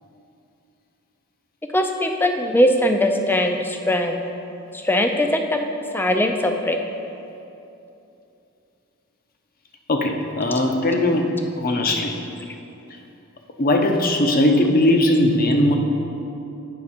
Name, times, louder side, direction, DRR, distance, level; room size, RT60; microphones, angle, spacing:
voice 1, 1.7-4.2 4.7-5.6 5.9-6.8, left 1 dB, 10° left, 5 dB, 0.4 m, -20 dB
voice 2, 9.9-12.2 13.6-15.8, left 1 dB, 45° left, 3 dB, 0.7 m, -19 dB
8.8 x 5.9 x 4.3 m, 2.8 s
head